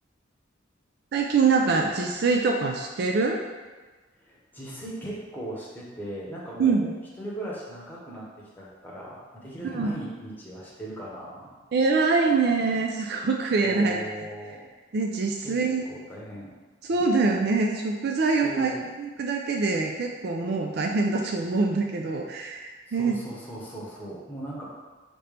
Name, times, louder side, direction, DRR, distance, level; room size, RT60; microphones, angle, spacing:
voice 1, 1.1-3.4 6.6-6.9 9.7-9.9 11.7-14.0 14.9-15.8 16.8-23.2, right 4 dB, 55° right, 1 dB, 0.3 m, -24 dB
voice 2, 4.2-6.8 7.2-8.3 8.6-11.6 13.6-14.7 15.4-15.6 15.8-16.5 18.4-18.9 22.9-24.6, right 1 dB, 10° left, -6 dB, 0.9 m, -38 dB
5.1 x 2.9 x 3.3 m, 1.3 s
head